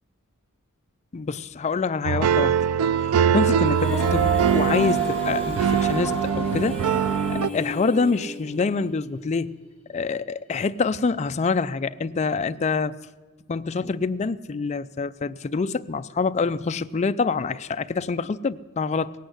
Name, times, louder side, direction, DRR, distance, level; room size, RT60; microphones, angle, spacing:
voice 1, 1.1-2.6 3.3-6.8 7.3-9.6 9.9-12.9 13.5-19.1, left 4 dB, 30° left, 0.4 m, -26 dB
sound 1, 2.0-7.5, right 7 dB, 85° right, 0.4 m, -22 dB
Female singing, 3.7-8.9, right 6 dB, 5° left, 1.8 m, -30 dB
sound 2, 4.5-9.4 9.6-9.7, equal, 25° right, 3.0 m, -38 dB
18.0 x 8.4 x 7.8 m
head